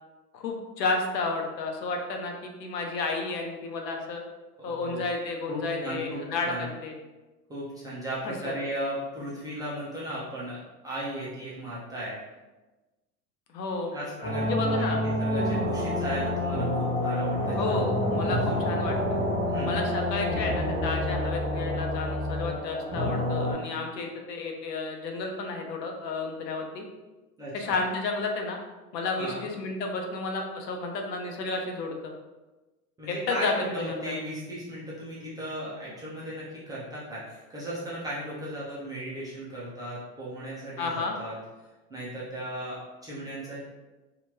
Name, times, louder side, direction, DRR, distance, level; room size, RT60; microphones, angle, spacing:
voice 1, 0.3-4.2 4.6-6.9 8.2-8.5 13.5-14.0 14.4-15.0 17.5-19.2 19.6-26.8 27.5-28.6 28.9-32.1 33.3-34.1 40.8-41.2, left 3 dB, 90° left, 2 dB, 0.7 m, -31 dB
voice 2, 4.6-5.0 5.5-6.7 7.5-10.6 10.8-12.2 13.9-17.8 18.3-18.6 19.5-19.8 27.4-27.8 29.2-29.5 33.0-41.3 41.9-43.6, right 1 dB, 10° right, -8 dB, 0.3 m, -36 dB
sound 1, 14.2-23.5, left 1 dB, 15° left, 1.2 m, -28 dB
2.8 x 2.4 x 2.9 m, 1.1 s
hypercardioid pair, 105°, 49 cm